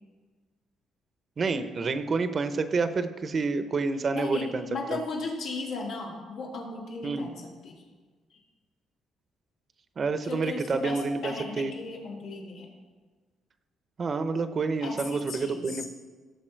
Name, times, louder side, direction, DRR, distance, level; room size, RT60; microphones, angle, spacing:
voice 1, 1.4-4.7 4.9-5.0 7.0-7.3 10.0-11.7 14.0-15.8, right 4 dB, 35° right, 10 dB, 0.8 m, -28 dB
voice 2, 4.1-7.8 8.3-8.4 10.2-12.7 14.8-15.9, left 3 dB, 80° left, -3 dB, 3.3 m, -36 dB
17.5 x 7.1 x 4.5 m, 1.4 s
cardioid pair, 115°, 0 cm